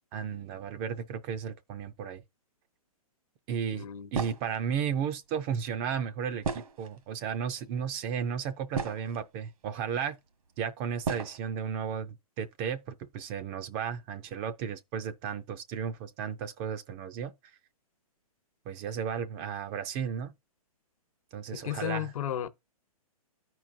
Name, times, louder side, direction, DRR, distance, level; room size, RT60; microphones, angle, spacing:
voice 1, 0.1-2.2 3.5-10.2 10.6-17.3 18.7-20.3 21.3-22.1, right 7 dB, 25° right, 0.4 m, -34 dB
voice 2, 3.7-4.1 21.5-22.5, left 11 dB, 65° left, 0.9 m, -34 dB
sound 1, 4.1-4.6 6.4-7.1 8.0-8.1 8.5-9.3 10.2-10.3 11.0-11.4, right 5 dB, 70° right, 1.4 m, -34 dB
13.5 x 4.6 x 2.5 m
hypercardioid pair, 145°, 19 cm